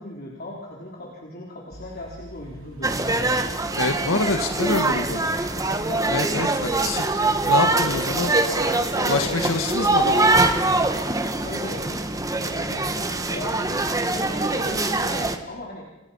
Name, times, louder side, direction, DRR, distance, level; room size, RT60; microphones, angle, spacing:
voice 1, 0.0-3.5 3.8-5.0 5.6-6.2 7.5-9.9 11.3-12.0 12.4-13.9 14.1-15.9, left 1 dB, 45° left, -2 dB, 3.8 m, -37 dB
sound 1, 1.7-12.5, equal, 75° right, 3.3 m, -47 dB
sound 2, 2.8-15.4, right 2 dB, 15° right, 1.6 m, -23 dB
voice 2, 3.8-5.2 6.1-7.0 7.4-8.3 8.6-10.4, left 3 dB, 80° left, 5 dB, 1.7 m, -26 dB
Car, 4.7-13.9, left 1 dB, 5° left, 3.6 m, -43 dB
29.5 x 28.5 x 5.6 m, 1.1 s
head